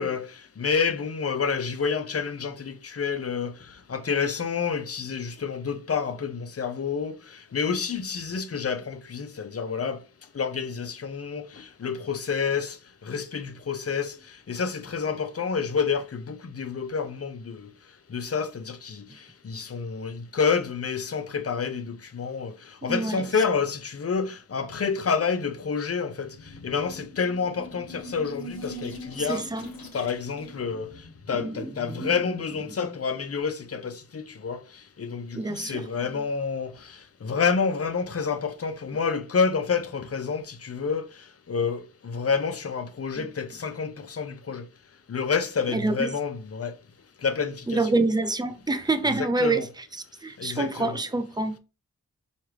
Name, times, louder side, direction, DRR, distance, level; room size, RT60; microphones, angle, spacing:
voice 1, 0.0-10.0 10.3-12.8 13.0-17.7 18.1-26.4 26.6-29.4 29.9-30.9 31.3-34.6 35.0-41.1 41.5-44.7 45.1-46.7 47.2-47.8 49.4-49.6 50.4-51.0, left 5 dB, 45° left, 0.6 m, -29 dB
voice 2, 22.9-23.2 29.2-29.7 31.3-32.2 35.3-36.3 43.1-43.3 45.7-46.1 47.7-51.6, right 2 dB, 10° right, 0.5 m, -27 dB
sound 1, 26.1-31.5, equal, 90° left, 0.8 m, -42 dB
4.4 x 2.4 x 3.2 m
cardioid pair, 55°, 35 cm